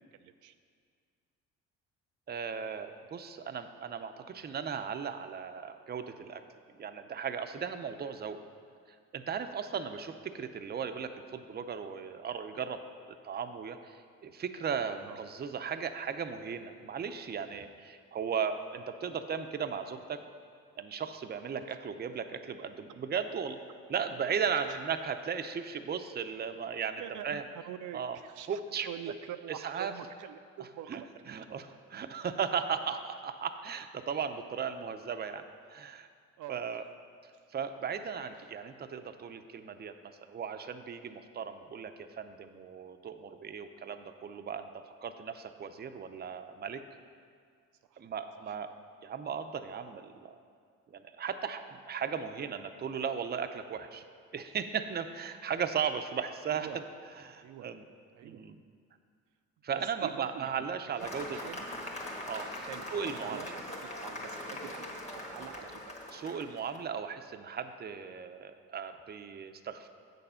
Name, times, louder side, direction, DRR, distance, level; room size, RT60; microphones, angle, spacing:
voice 1, 0.2-0.5 15.0-15.2 27.0-31.1 36.4-36.6 47.9-48.0 48.4-48.5 56.6-56.8 57.4-57.7 58.2-58.4 60.0-60.5 61.0-61.6 62.6-66.0, right 11 dB, 80° right, 9 dB, 0.5 m, -45 dB
voice 2, 2.3-6.4 6.8-8.4 9.1-12.8 13.2-20.2 20.8-23.6 23.9-27.4 27.9-28.2 28.5-28.9 29.5-29.9 30.6-36.1 36.5-36.8 37.5-46.8 48.0-48.7 49.0-50.3 50.9-54.0 54.3-56.8 57.2-57.8 58.2-58.6 59.6-61.4 62.3-63.6 66.1-69.9, right 7 dB, 35° right, 8 dB, 0.5 m, -36 dB
Cheering / Applause, 61.0-66.8, left 1 dB, 20° left, 1.5 m, -41 dB
8.2 x 6.7 x 5.6 m, 2.1 s
cardioid pair, 90°, 30 cm